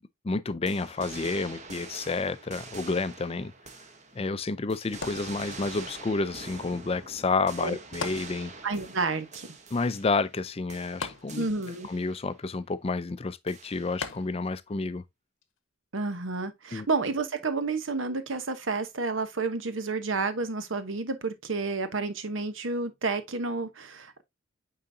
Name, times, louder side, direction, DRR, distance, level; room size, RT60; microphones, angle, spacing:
voice 1, 0.2-3.5 4.1-8.5 9.7-11.5 11.9-15.0 16.7-16.9, left 3 dB, 30° left, 0.4 m, -30 dB
sound 1, 0.7-4.4 4.7-10.4 10.7-12.3 13.5-14.2, right 4 dB, 35° right, 1.0 m, -45 dB
sound 2, 5.0-5.9 8.0-8.9 9.2-9.3 11.0-11.8 14.0-14.7 15.4-15.5, left 4 dB, 80° left, 0.9 m, -38 dB
voice 2, 8.6-9.5 11.3-11.9 15.9-24.2, right 3 dB, 75° right, 1.0 m, -30 dB
8.9 x 3.9 x 2.7 m
head